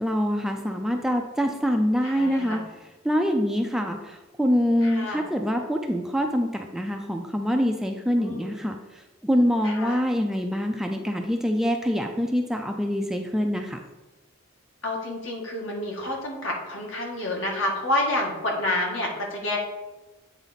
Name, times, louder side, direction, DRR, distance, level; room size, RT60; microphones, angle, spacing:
voice 1, 0.0-2.6 3.0-13.8, equal, ahead, 3 dB, 0.4 m, -25 dB
voice 2, 2.0-2.6 4.8-5.3 8.2-8.5 9.6-10.0 14.8-19.6, left 1 dB, 70° left, -1 dB, 1.6 m, -29 dB
8.2 x 4.0 x 4.0 m, 1.1 s
head